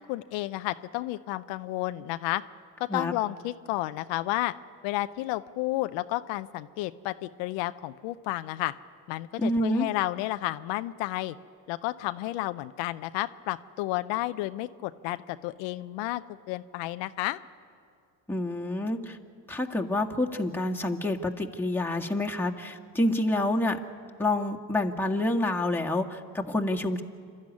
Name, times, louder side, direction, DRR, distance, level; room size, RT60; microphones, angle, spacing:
voice 1, 0.1-2.4 2.8-4.5 4.8-8.7 9.1-11.4 11.7-17.4, left 17 dB, 80° left, 11 dB, 0.7 m, -31 dB
voice 2, 9.4-9.9 18.3-19.2 19.5-23.8 24.2-27.0, left 1 dB, 5° left, 0 dB, 1.9 m, -28 dB
27.0 x 12.5 x 9.7 m, 2.3 s
supercardioid pair, 75°, 44 cm